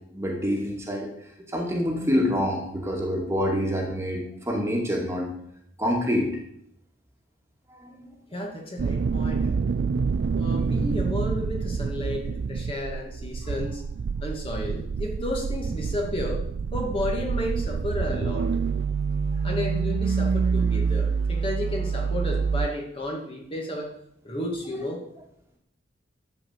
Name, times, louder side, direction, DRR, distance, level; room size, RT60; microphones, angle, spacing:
voice 1, 0.1-1.1 1.5-5.3 5.8-6.3 10.4-10.7, equal, 15° right, 0 dB, 2.3 m, -26 dB
voice 2, 8.3-9.6 10.3-13.8 14.2-16.4 16.7-18.5 19.4-23.9 24.2-25.0, left 1 dB, 30° left, 0 dB, 2.5 m, -32 dB
sound 1, 8.8-22.7, right 5 dB, 60° right, 0.4 m, -27 dB
13.0 x 5.3 x 8.3 m, 0.74 s
head